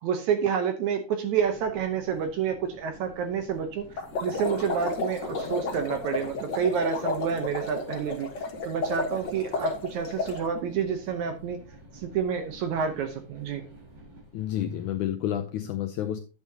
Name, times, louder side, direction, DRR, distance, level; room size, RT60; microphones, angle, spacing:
voice 1, 0.0-3.9 4.2-8.3 8.7-11.6 12.0-13.6, right 7 dB, 70° right, 7 dB, 1.9 m, -28 dB
sound 1, 1.3-15.0, right 1 dB, 55° right, 5.0 m, -50 dB
sound 2, 4.0-10.4, left 3 dB, 50° left, 1.3 m, -32 dB
voice 2, 14.3-16.2, left 11 dB, 80° left, 6 dB, 1.7 m, -30 dB
10.5 x 8.4 x 2.8 m, 0.34 s
omnidirectional pair, 4.1 m